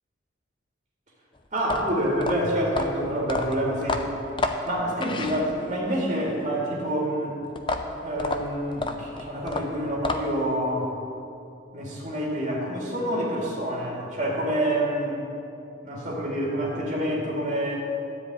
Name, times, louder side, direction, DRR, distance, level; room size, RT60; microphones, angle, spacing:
voice 1, 1.5-4.0 4.6-7.4 8.0-10.9 11.7-15.2 15.8-17.8, right 1 dB, 40° right, -5 dB, 2.2 m, -27 dB
sound 1, 1.6-5.9 7.6-10.5, left 2 dB, 25° left, 0.6 m, -30 dB
13.0 x 5.1 x 8.7 m, 2.7 s
head